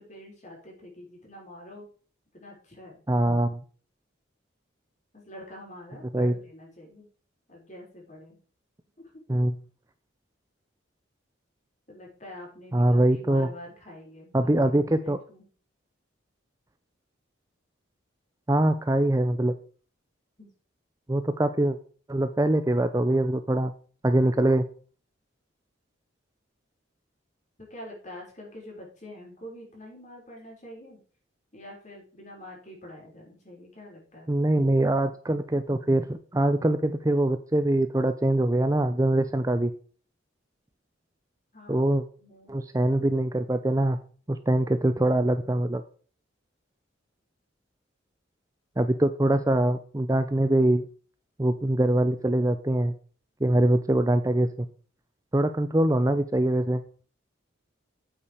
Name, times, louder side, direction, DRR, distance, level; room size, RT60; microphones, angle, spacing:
voice 1, 0.0-1.9 2.3-3.0 5.1-7.1 7.5-8.4 9.0-9.2 11.9-15.4 20.4-20.5 27.7-31.0 31.5-34.3 41.5-42.5, left 1 dB, 35° left, -1 dB, 5.5 m, -46 dB
voice 2, 3.1-3.6 6.1-6.3 9.3-9.5 12.7-13.5 14.3-15.2 18.5-19.5 21.1-21.8 22.1-23.7 24.0-24.6 34.3-39.7 41.7-42.0 42.5-44.0 44.3-45.8 48.8-50.9 51.4-52.9 53.4-54.5 55.3-56.8, right 1 dB, 15° right, 10 dB, 0.5 m, -23 dB
8.8 x 8.6 x 4.9 m, 0.41 s
head